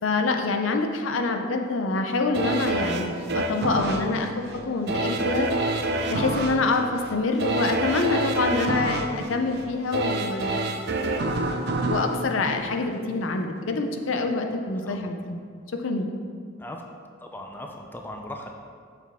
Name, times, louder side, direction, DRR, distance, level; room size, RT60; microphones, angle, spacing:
voice 1, 0.0-5.5 6.1-10.7 11.9-15.4 15.7-16.1, left 3 dB, 80° left, 5 dB, 0.6 m, -26 dB
sound 1, 2.3-13.3 13.7-13.8, right 2 dB, 55° right, 0.5 m, -28 dB
voice 2, 17.2-18.5, left 1 dB, 10° left, 2 dB, 0.4 m, -38 dB
6.7 x 6.1 x 3.6 m, 2.2 s
head